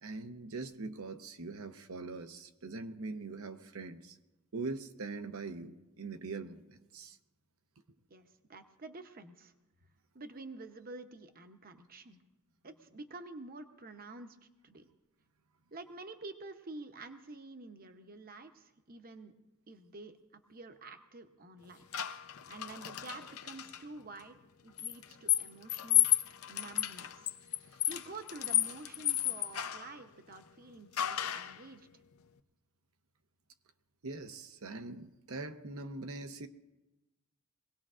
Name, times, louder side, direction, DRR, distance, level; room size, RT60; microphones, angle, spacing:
voice 1, 0.0-4.2 4.5-7.2 34.0-36.5, right 3 dB, 70° right, 8 dB, 0.8 m, -42 dB
voice 2, 8.1-9.5 10.1-12.2 12.6-14.4 14.6-14.9 15.7-19.3 19.7-20.2 20.5-21.8 22.5-24.3 24.6-26.1 26.5-27.3 27.9-31.9, right 3 dB, 40° right, 7 dB, 0.8 m, -49 dB
sound 1, 21.9-23.8 24.8-29.9 31.0-31.6, left 13 dB, 75° left, 0.7 m, -32 dB
23.5 x 18.0 x 2.5 m, 1.0 s
head